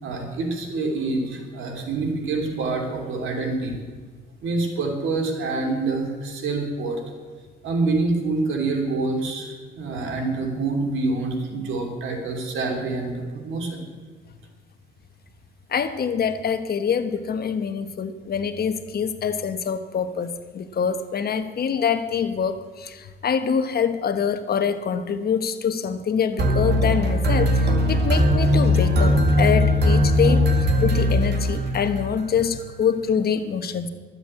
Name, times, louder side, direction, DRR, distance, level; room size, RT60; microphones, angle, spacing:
voice 1, 0.0-3.8 4.4-7.0 7.6-13.9, right 3 dB, 80° right, 2 dB, 3.0 m, -26 dB
voice 2, 15.7-30.5 30.8-33.9, left 7 dB, 50° left, 9 dB, 1.1 m, -25 dB
sound 1, 26.4-32.1, left 1 dB, 55° right, 2.3 m, -19 dB
12.5 x 8.1 x 8.7 m, 1.5 s
cardioid pair, 90°, 20 cm